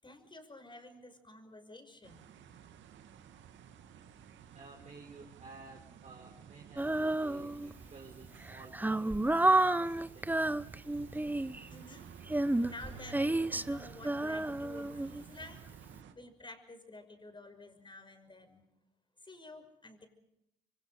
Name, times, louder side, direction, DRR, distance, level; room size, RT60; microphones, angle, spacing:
voice 1, 0.0-2.3 11.7-12.1 12.6-15.6 16.1-18.7 19.2-20.1, left 2 dB, 25° left, 8 dB, 5.9 m, -51 dB
sound 1, 2.0-16.1, right 7 dB, 70° right, 2.1 m, -53 dB
voice 2, 4.5-10.4, right 3 dB, 35° right, 0 dB, 4.6 m, -53 dB
Female singing, 6.8-7.8 8.4-11.7 12.3-15.4, right 2 dB, 10° right, 0.9 m, -30 dB
26.5 x 24.5 x 4.9 m, 0.79 s
supercardioid pair, 60°, 20 cm